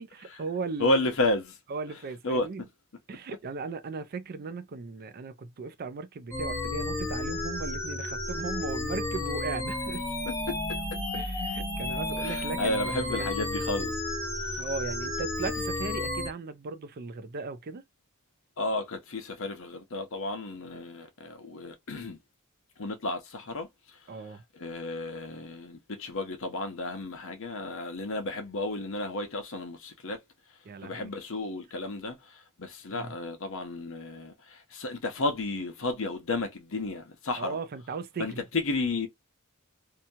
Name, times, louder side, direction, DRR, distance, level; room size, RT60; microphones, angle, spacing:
voice 1, 0.0-1.1 1.7-2.7 3.1-10.1 11.1-13.3 14.6-17.8 24.1-24.4 30.6-31.1 32.9-33.1 37.4-38.4, right 4 dB, 45° right, 0.4 m, -37 dB
voice 2, 0.8-1.5 2.2-2.5 12.2-13.9 18.6-22.2 22.8-23.7 24.6-30.2 30.8-32.2 32.6-37.6 38.2-39.1, left 2 dB, 65° left, 0.8 m, -32 dB
sound 1, 6.3-16.3, left 2 dB, 15° left, 0.9 m, -32 dB
2.8 x 2.3 x 2.7 m
head